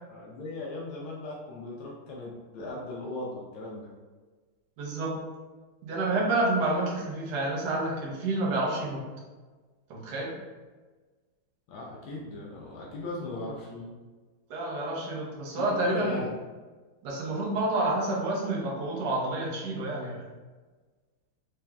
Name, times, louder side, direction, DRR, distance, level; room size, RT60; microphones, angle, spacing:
voice 1, 0.1-3.9 11.7-13.9 15.5-16.3, left 2 dB, 80° left, -3 dB, 1.5 m, -38 dB
voice 2, 4.8-5.1 5.8-9.0 9.9-10.3 14.5-16.2 17.0-20.2, right 2 dB, 60° right, -3 dB, 1.4 m, -29 dB
4.8 x 3.4 x 2.3 m, 1.3 s
omnidirectional pair, 2.2 m